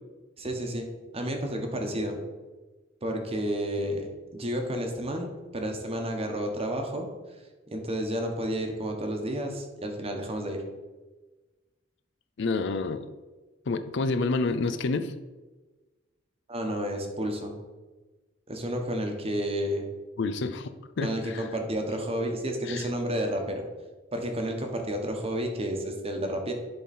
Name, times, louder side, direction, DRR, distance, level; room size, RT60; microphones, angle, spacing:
voice 1, 0.4-0.9 1.1-2.2 3.0-7.1 7.7-10.6 16.5-17.5 18.5-19.8 21.0-23.6 24.1-26.5, equal, 30° right, 3 dB, 1.1 m, -31 dB
voice 2, 12.4-13.1 13.7-15.1 20.2-20.7 21.0-21.5 22.7-22.9, left 3 dB, 65° left, 10 dB, 0.5 m, -28 dB
10.5 x 3.8 x 4.2 m, 1.2 s
head